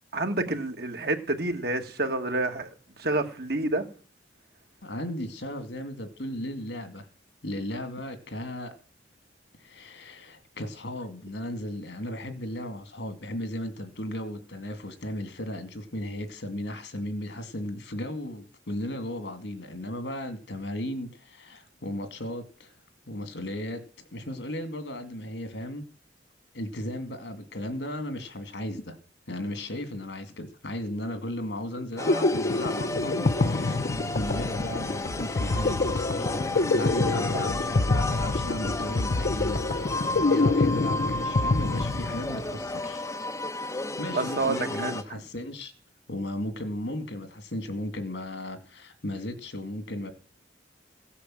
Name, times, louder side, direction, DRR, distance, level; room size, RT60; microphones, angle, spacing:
voice 1, 0.1-2.7 3.0-3.9 37.3-37.4 44.1-44.9, right 2 dB, 60° right, 1.9 m, -28 dB
voice 2, 4.8-7.1 7.4-8.7 9.6-22.7 23.1-23.8 24.1-25.8 26.5-29.0 29.3-33.8 34.2-36.4 36.7-43.0 44.0-45.7 46.1-50.1, left 1 dB, 90° left, 2.3 m, -35 dB
sound 1, 31.8-42.6, left 2 dB, 50° left, 0.6 m, -26 dB
sound 2, 32.0-45.0, left 2 dB, 15° left, 1.0 m, -33 dB
16.0 x 8.4 x 7.7 m
head